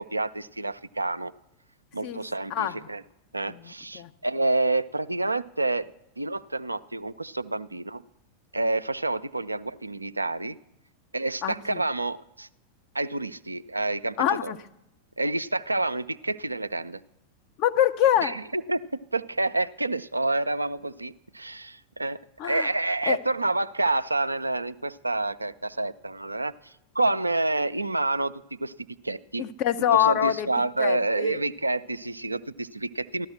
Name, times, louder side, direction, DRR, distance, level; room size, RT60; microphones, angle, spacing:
voice 1, 0.0-1.3 1.9-3.0 3.3-5.9 6.2-8.0 8.5-10.6 11.1-12.5 12.9-14.2 14.4-14.5 15.2-17.0 18.2-22.2 22.4-28.7 29.0-29.4 29.9-33.3, right 2 dB, 85° right, 11 dB, 0.4 m, -28 dB
voice 2, 3.5-4.1 11.4-11.8 14.2-14.6 17.6-18.4 22.4-22.7 23.0-23.2 29.4-30.5 30.8-31.4, left 10 dB, 40° left, 7 dB, 0.8 m, -25 dB
15.0 x 12.0 x 6.4 m, 0.85 s
figure-of-eight pair, 90°, 0 cm